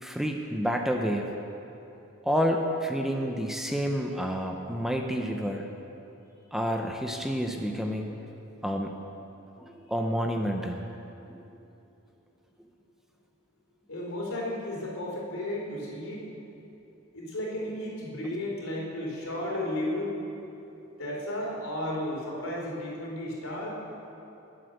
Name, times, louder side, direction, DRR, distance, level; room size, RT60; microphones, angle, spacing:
voice 1, 0.0-1.3 2.2-5.7 6.5-8.2 8.6-8.9 9.6-10.8 11.3-11.4, equal, ahead, 2 dB, 0.7 m, -29 dB
voice 2, 13.9-16.3 17.1-20.1 21.0-23.8, left 1 dB, 80° left, -3 dB, 3.7 m, -33 dB
21.0 x 8.0 x 6.6 m, 2.9 s
head